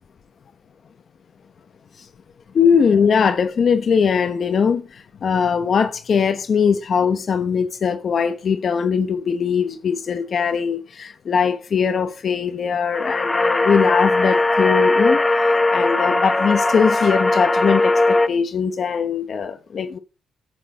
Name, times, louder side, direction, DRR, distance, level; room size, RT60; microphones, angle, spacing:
voice 1, 2.5-15.2 15.7-20.0, left 6 dB, 50° left, 0.9 m, -20 dB
sound 1, 12.9-18.3, left 2 dB, 15° left, 0.7 m, -19 dB
10.0 x 6.2 x 4.1 m
cardioid pair, 90°, 0 cm